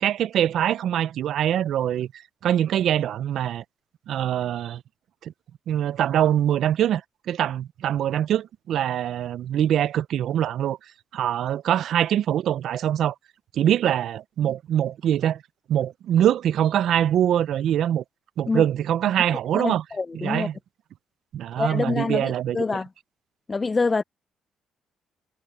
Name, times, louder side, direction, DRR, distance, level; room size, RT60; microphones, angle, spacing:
voice 1, 0.0-3.6 4.1-4.8 5.2-5.3 5.7-7.0 7.3-10.8 11.1-13.1 13.5-15.4 15.7-18.0 18.4-19.8 20.1-20.6 21.3-22.6, right 10 dB, 75° right, 0.5 m, -23 dB
voice 2, 19.5-20.5 21.6-22.9 23.5-24.0, left 4 dB, 30° left, 0.4 m, -26 dB
cardioid pair, 90°, 0 cm